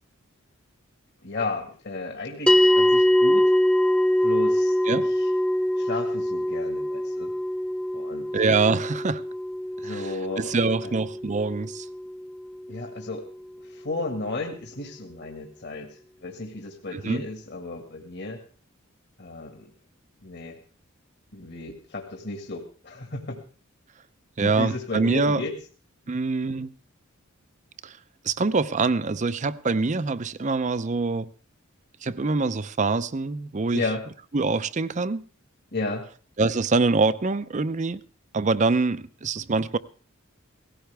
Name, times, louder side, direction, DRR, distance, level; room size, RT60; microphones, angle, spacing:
voice 1, 1.2-3.5 4.2-5.3 5.8-7.3 7.9-8.3 9.8-10.9 12.7-13.3 13.6-18.4 19.2-19.7 20.2-20.6 21.3-23.4 24.4-25.5 33.7-34.1 35.7-36.1, left 2 dB, 55° left, 1.8 m, -34 dB
sound 1, 2.5-13.0, equal, 5° left, 0.8 m, -23 dB
voice 2, 8.3-9.2 9.8-10.1 10.4-11.9 16.9-17.2 24.4-25.4 26.1-26.7 27.8-28.0 28.2-31.3 32.0-33.8 34.3-35.3 36.4-38.0 38.3-39.8, right 3 dB, 35° right, 0.6 m, -24 dB
17.5 x 15.0 x 3.4 m
head